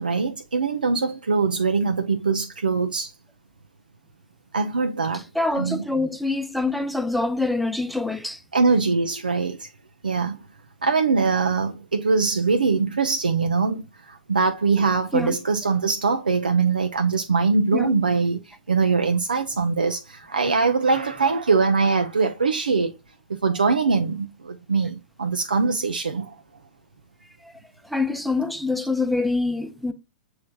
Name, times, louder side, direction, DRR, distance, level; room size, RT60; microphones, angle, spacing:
voice 1, 0.0-3.1 4.5-5.2 5.6-5.8 8.5-9.7 10.0-10.4 10.8-22.9 23.3-26.3, right 4 dB, 80° right, 0.4 m, -22 dB
voice 2, 5.1-8.4 15.1-15.4 17.7-17.9 27.4-27.5 27.8-29.9, left 3 dB, ahead, 0.6 m, -25 dB
7.5 x 3.1 x 2.2 m
figure-of-eight pair, 100°, 5 cm